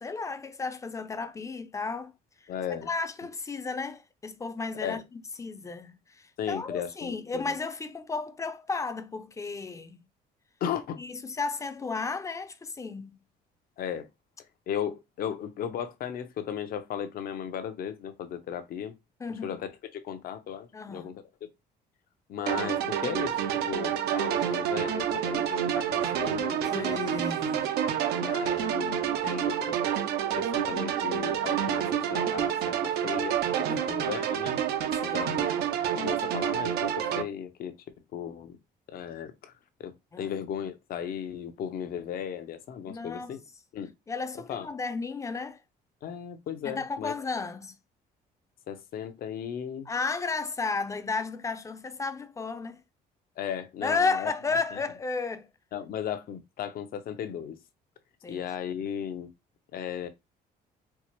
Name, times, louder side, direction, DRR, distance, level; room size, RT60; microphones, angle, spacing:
voice 1, 0.0-2.1 2.9-10.0 11.0-13.2 15.3-15.4 19.2-19.6 20.7-21.2 26.7-27.8 33.7-34.0 35.0-35.2 40.1-40.4 42.8-43.3 44.1-45.6 46.6-47.8 49.9-52.8 53.8-55.5 58.2-58.4, left 4 dB, 20° left, 0.5 m, -33 dB
voice 2, 2.5-2.9 4.8-5.0 6.4-7.5 10.6-11.0 13.8-14.1 14.7-18.9 19.4-21.2 22.3-27.0 28.1-29.8 30.3-34.6 35.1-35.5 36.0-37.7 38.1-38.6 38.9-39.5 39.8-39.9 40.2-43.4 43.7-43.9 44.3-44.7 46.0-47.1 48.7-49.9 53.4-54.3 54.7-54.8 55.7-57.6 58.3-59.3 59.7-60.1, left 9 dB, 60° left, 0.7 m, -36 dB
sound 1, 22.5-37.2, right 9 dB, 75° right, 0.5 m, -28 dB
4.5 x 2.0 x 2.9 m
cardioid pair, 110°, 17 cm